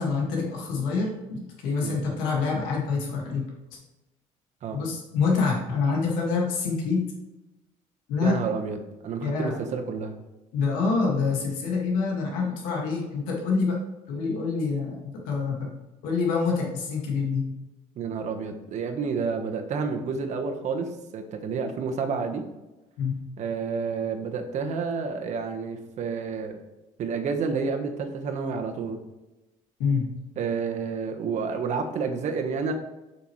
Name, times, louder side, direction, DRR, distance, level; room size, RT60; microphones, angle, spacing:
voice 1, 0.0-3.5 4.7-7.0 8.1-8.3 9.2-9.6 10.5-13.8 14.1-15.7 16.0-17.5 23.0-23.1 29.8-30.2, left 4 dB, 85° left, -1 dB, 2.0 m, -26 dB
voice 2, 8.2-10.2 18.0-20.9 21.1-22.4 23.4-26.6 27.0-29.0 30.4-32.7, right 5 dB, 55° right, 4 dB, 1.3 m, -29 dB
7.0 x 6.1 x 3.2 m, 1.0 s
supercardioid pair, 95°, 14 cm